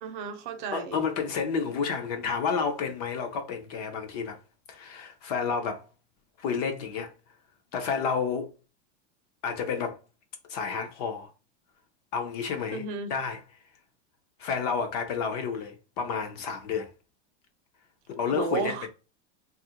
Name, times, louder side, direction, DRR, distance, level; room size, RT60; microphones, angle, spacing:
voice 1, 0.0-1.0 12.7-13.1 18.3-18.9, right 4 dB, 45° right, 0.6 m, -33 dB
voice 2, 0.7-4.4 4.7-5.9 6.4-7.1 7.7-8.5 9.4-10.0 10.5-11.3 12.1-13.4 14.4-16.9 18.2-18.9, left 6 dB, 35° left, 0.4 m, -30 dB
3.2 x 2.4 x 2.7 m
supercardioid pair, 165°, 34 cm